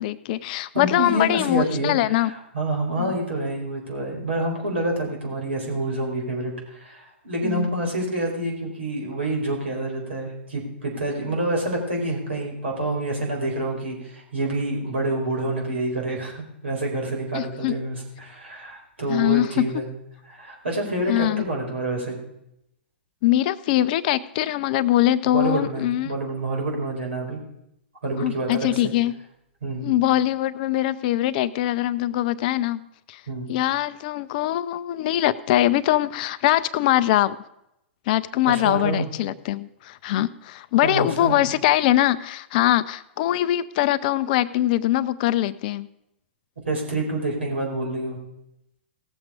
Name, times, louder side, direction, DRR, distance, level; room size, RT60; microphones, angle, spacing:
voice 1, 0.0-2.3 3.0-3.1 7.4-7.7 17.3-17.7 19.1-19.7 21.1-21.4 23.2-26.1 28.2-29.2 29.8-32.8 33.1-33.2 33.5-37.4 38.1-45.9, left 13 dB, 45° left, 15 dB, 0.5 m, -22 dB
voice 2, 0.7-2.2 2.5-19.9 20.3-22.2 25.3-27.4 28.0-28.8 29.6-29.9 33.3-33.5 38.5-39.1 40.8-41.4 46.6-48.2, right 1 dB, 75° right, 0 dB, 4.5 m, -27 dB
17.0 x 7.3 x 5.0 m, 0.82 s
figure-of-eight pair, 110°, 6 cm